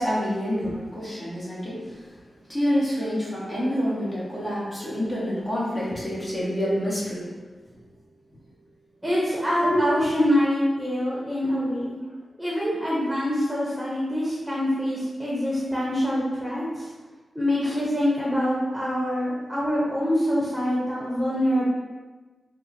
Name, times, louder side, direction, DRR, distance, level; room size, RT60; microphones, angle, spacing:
voice 1, 0.0-2.1 2.5-7.3 9.6-9.8 17.6-17.7, equal, 30° left, -6 dB, 0.9 m, -27 dB
voice 2, 9.0-11.9 12.4-16.9 17.3-21.6, equal, 10° right, -6 dB, 0.9 m, -25 dB
3.4 x 2.1 x 2.9 m, 1.2 s
cardioid pair, 50°, 0 cm